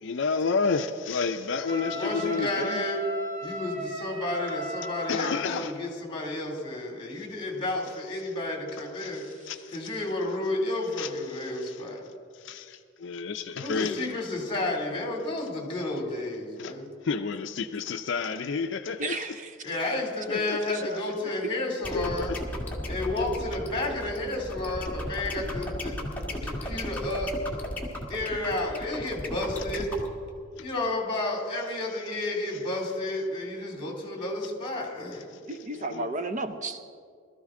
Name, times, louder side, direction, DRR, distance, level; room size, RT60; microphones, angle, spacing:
voice 1, 0.0-2.8 5.1-5.7 7.1-7.3 9.0-9.8 11.0-11.8 12.3-14.3 16.6-16.7 17.0-19.2 20.3-20.9 21.9-22.4 29.6-29.8 35.5-36.1, left 4 dB, 60° left, 7 dB, 0.5 m, -31 dB
Wind instrument woodwind instrument, 1.7-5.6, equal, 85° right, 3.9 m, -36 dB
voice 2, 1.8-3.1 3.4-9.2 9.7-12.0 13.6-16.9 19.6-22.4 22.9-26.0 26.3-27.4 28.1-29.9 30.6-35.2, left 2 dB, 25° left, 0 dB, 2.7 m, -31 dB
voice 3, 19.0-19.6 19.8-19.9 20.7-21.0 35.5-36.8, right 2 dB, 40° right, 9 dB, 0.6 m, -33 dB
sound 1, 21.8-30.1, left 1 dB, 10° left, 1.7 m, -35 dB
20.5 x 13.5 x 3.7 m, 2.2 s
head